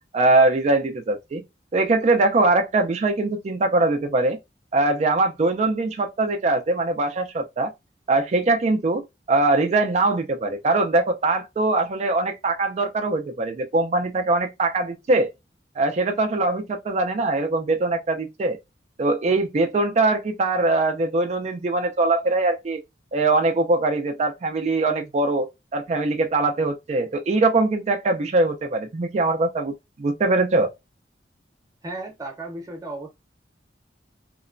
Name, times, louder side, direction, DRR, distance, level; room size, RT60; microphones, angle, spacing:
voice 1, 0.1-1.4 1.7-4.4 4.7-7.7 8.1-15.3 15.8-18.6 19.0-22.8 23.1-30.7, right 2 dB, 40° right, 0.4 m, -22 dB
voice 2, 31.8-33.1, right 2 dB, 20° right, 0.8 m, -34 dB
2.9 x 2.1 x 2.5 m
head